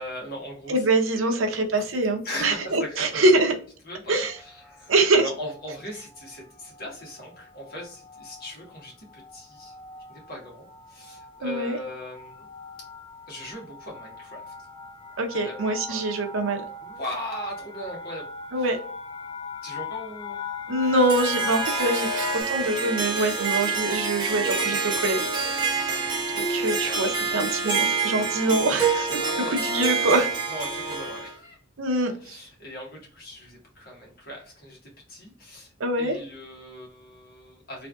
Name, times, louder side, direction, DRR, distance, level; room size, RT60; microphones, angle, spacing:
voice 1, 0.0-0.9 1.1-1.9 2.2-3.5 3.8-9.7 10.1-12.4 13.3-14.5 15.3-15.6 15.9-16.0 16.8-18.7 19.6-20.4 25.8-26.2 26.6-27.8 28.1-28.4 29.2-30.2 30.5-31.6 32.2-35.7 36.0-37.9, left 1 dB, 50° left, -2 dB, 1.4 m, -39 dB
voice 2, 0.7-3.5 4.1-4.3 4.9-5.2 11.4-11.8 15.2-16.6 18.5-18.8 20.7-25.9 26.3-29.2 29.5-30.3 31.8-32.4 35.8-36.1, right 2 dB, 85° right, 4 dB, 0.7 m, -24 dB
sound 1, 4.3-4.8 5.5-5.9 6.2-6.4 6.6-22.4, left 5 dB, 25° left, 0.4 m, -39 dB
Harp, 20.8-31.3, right 4 dB, 25° right, 0.8 m, -27 dB
3.4 x 2.5 x 2.3 m, 0.43 s
head